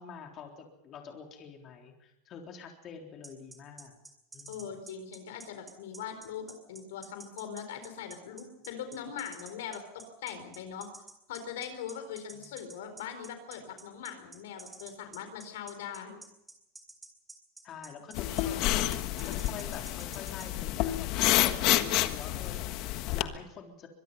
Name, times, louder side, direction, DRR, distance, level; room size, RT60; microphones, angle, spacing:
voice 1, 0.0-3.9 4.3-4.7 12.3-12.6 17.6-23.9, left 6 dB, 35° left, 2 dB, 3.7 m, -47 dB
sound 1, 3.2-20.5, right 2 dB, 10° right, 4.6 m, -49 dB
voice 2, 4.5-10.9 11.3-16.2 18.1-18.6, left 8 dB, 85° left, 8 dB, 4.4 m, -41 dB
sound 2, 18.1-23.2, left 15 dB, 55° left, 1.5 m, -29 dB
24.5 x 21.5 x 5.6 m, 0.85 s
supercardioid pair, 135°, 0 cm